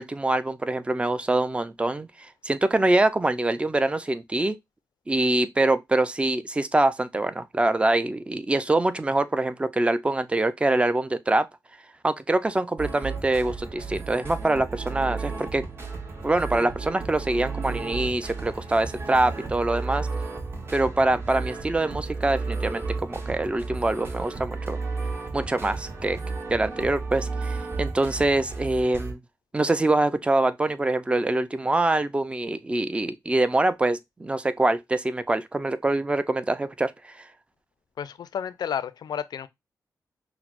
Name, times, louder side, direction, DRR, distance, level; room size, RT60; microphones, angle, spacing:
voice 1, 0.0-4.6 5.1-11.5 12.0-15.6 16.2-20.1 20.7-24.8 25.3-26.2 26.5-29.2 29.5-37.2, right 2 dB, 15° right, 0.4 m, -24 dB
sound 1, 12.8-29.1, right 4 dB, 35° right, 1.0 m, -33 dB
voice 2, 38.0-39.5, left 8 dB, 75° left, 0.4 m, -31 dB
5.8 x 2.0 x 2.4 m
cardioid pair, 75°, 7 cm